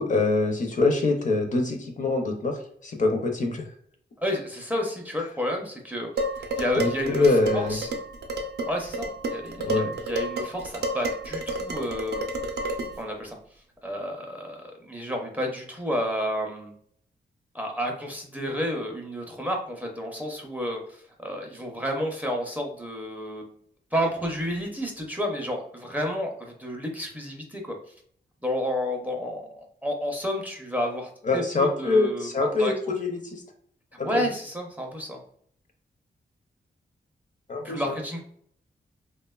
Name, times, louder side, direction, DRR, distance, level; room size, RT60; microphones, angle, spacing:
voice 1, 0.0-2.6 2.8-3.6 6.8-7.8 9.6-9.9 31.2-33.4 34.0-34.2 37.5-37.9, left 3 dB, 45° left, 3 dB, 0.5 m, -24 dB
voice 2, 4.2-6.1 6.4-7.9 8.7-12.3 13.0-13.4 13.8-16.7 17.5-23.5 23.9-27.7 28.4-32.7 34.0-35.2 37.6-38.2, equal, 10° right, 0 dB, 0.4 m, -31 dB
Dishes pots and pans, 6.2-13.0, right 1 dB, 65° right, 0.4 m, -31 dB
2.9 x 2.1 x 2.2 m, 0.64 s
wide cardioid pair, 100°, 18 cm